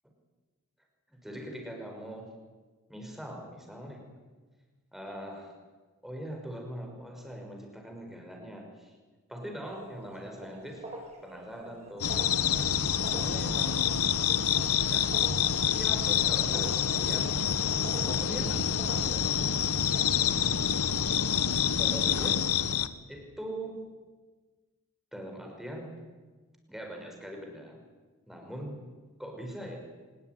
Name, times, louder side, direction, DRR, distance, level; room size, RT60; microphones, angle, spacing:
voice 1, 1.1-2.3 2.9-4.1 4.9-5.5 6.0-8.9 9.3-10.9 11.2-12.1 12.5-12.7 13.1-13.8 14.8-17.3 18.0-18.6 18.9-19.8 21.8-22.5 23.1-23.8 25.1-26.0 26.7-27.8 28.3-28.8 29.2-29.8, right 1 dB, ahead, 2 dB, 5.7 m, -41 dB
sound 1, 9.6-20.6, right 1 dB, 30° right, 6.3 m, -47 dB
sound 2, 12.0-22.9, left 8 dB, 75° left, 1.3 m, -27 dB
24.5 x 21.0 x 9.6 m, 1.3 s
head